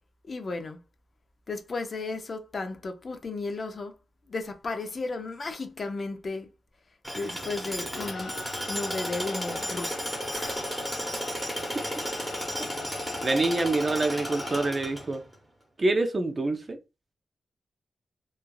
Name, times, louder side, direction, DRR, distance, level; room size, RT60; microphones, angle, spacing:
voice 1, 0.3-0.8 1.5-3.9 4.3-6.5 7.1-8.3 8.7-10.0 10.3-10.6, left 3 dB, 40° left, 0.4 m, -34 dB
Tools, 7.0-15.3, equal, 5° right, 0.9 m, -34 dB
sound 1, 7.9-14.7, left 3 dB, 75° left, 1.2 m, -39 dB
voice 2, 13.2-15.2 15.8-16.8, right 2 dB, 30° right, 0.4 m, -26 dB
3.1 x 2.3 x 2.3 m
wide cardioid pair, 145°, 0 cm